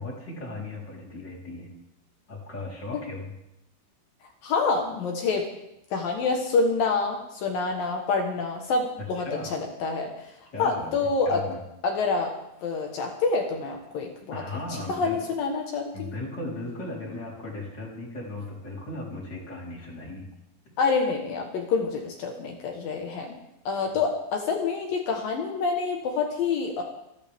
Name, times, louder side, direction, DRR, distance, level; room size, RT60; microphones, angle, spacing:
voice 1, 0.0-1.7 2.3-3.3 9.1-9.5 10.5-10.9 11.3-11.6 14.3-15.2 15.9-20.3, left 2 dB, 25° left, -5 dB, 4.0 m, -36 dB
voice 2, 4.4-5.5 5.9-10.1 10.6-11.4 11.8-12.3 12.6-14.4 14.9-16.1 20.8-23.4 23.7-26.8, left 4 dB, 65° left, 2 dB, 2.3 m, -27 dB
28.0 x 11.5 x 3.6 m, 0.84 s
omnidirectional pair, 5.8 m